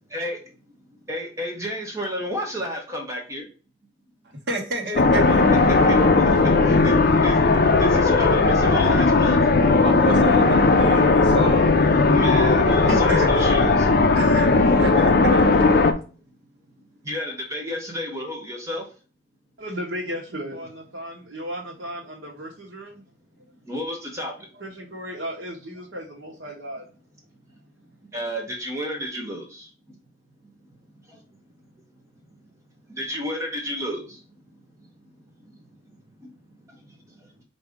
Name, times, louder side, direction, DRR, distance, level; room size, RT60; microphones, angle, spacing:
voice 1, 0.1-0.4 0.9-3.5 5.7-9.7 11.9-13.9 16.8-18.9 23.6-24.5 28.0-30.0 31.0-31.4 32.9-34.2 34.5-34.6 35.0-35.1 35.4-36.4 36.6-37.3, equal, 15° right, 0.7 m, -32 dB
voice 2, 4.5-5.8 9.8-11.7 12.9-13.5 14.1-15.4, right 1 dB, 60° right, 1.1 m, -29 dB
sound 1, 5.0-15.9, left 3 dB, 50° left, 0.4 m, -17 dB
voice 3, 19.6-23.0 24.5-26.9, equal, 80° right, 1.0 m, -35 dB
4.8 x 2.6 x 3.4 m
head